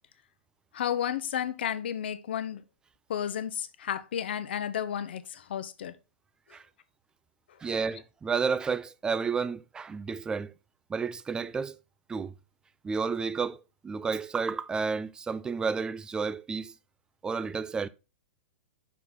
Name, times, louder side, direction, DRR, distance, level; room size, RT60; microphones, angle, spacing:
voice 1, 0.7-2.6 3.1-5.9, left 9 dB, 60° left, 0.7 m, -32 dB
voice 2, 7.6-10.5 10.9-11.8 12.1-12.3 12.8-16.7 17.2-17.9, right 5 dB, 10° right, 0.4 m, -31 dB
6.0 x 4.6 x 3.8 m
figure-of-eight pair, 105°, 6 cm